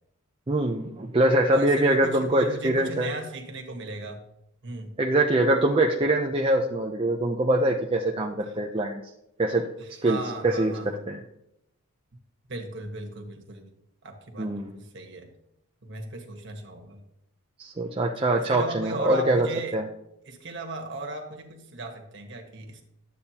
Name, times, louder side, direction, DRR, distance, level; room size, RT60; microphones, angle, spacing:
voice 1, 0.5-3.1 5.0-9.0 9.4-9.6 10.0-10.2 10.4-10.7 11.1-11.2 14.4-14.7 17.6-19.5 19.7-19.8, right 1 dB, 25° right, 0 dB, 0.5 m, -23 dB
voice 2, 1.5-4.2 4.6-4.9 8.4-8.6 9.8-11.0 12.5-13.7 14.0-15.3 15.8-17.0 18.4-19.8 20.2-22.8, right 2 dB, 55° right, 3 dB, 1.4 m, -36 dB
12.0 x 8.2 x 2.9 m, 0.84 s
head